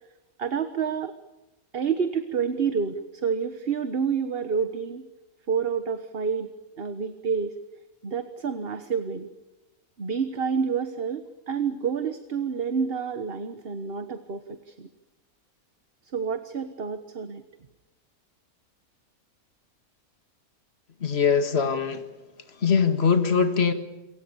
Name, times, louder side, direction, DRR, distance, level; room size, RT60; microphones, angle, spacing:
voice 1, 0.4-1.1 1.7-5.1 5.5-6.5 6.8-7.5 8.0-9.3 10.0-14.9 16.1-17.4, right 6 dB, 45° right, 10 dB, 1.4 m, -28 dB
voice 2, 21.0-22.1 22.5-23.7, left 6 dB, 45° left, 8 dB, 2.2 m, -22 dB
28.5 x 24.0 x 7.1 m, 1.1 s
omnidirectional pair, 1.5 m